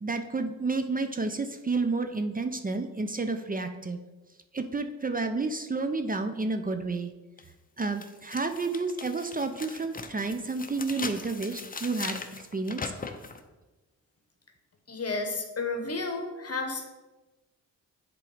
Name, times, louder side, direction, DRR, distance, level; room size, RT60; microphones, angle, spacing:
voice 1, 0.0-4.0 4.5-7.1 7.8-12.8, right 3 dB, 25° right, 7 dB, 0.6 m, -30 dB
sound 1, 7.4-7.5 8.0-13.4, left 4 dB, 25° left, 0.7 m, -39 dB
voice 2, 14.9-16.9, left 3 dB, 40° left, 4 dB, 1.3 m, -32 dB
7.5 x 3.8 x 5.0 m, 1.1 s
supercardioid pair, 55°, 36 cm